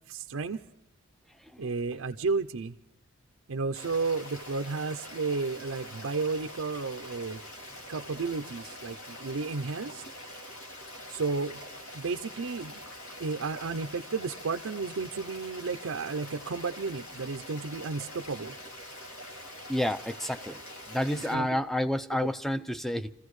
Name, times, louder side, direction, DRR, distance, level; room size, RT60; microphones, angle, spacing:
voice 1, 0.1-0.6 1.6-2.7 3.5-7.4 7.9-10.0 11.1-11.6 11.9-12.8 13.2-18.5 21.1-21.5, right 4 dB, 80° right, 0.6 m, -32 dB
Stream, 3.7-21.4, left 1 dB, 85° left, 2.8 m, -45 dB
voice 2, 19.7-20.6 20.9-23.1, left 1 dB, ahead, 0.5 m, -30 dB
27.0 x 15.5 x 3.2 m
head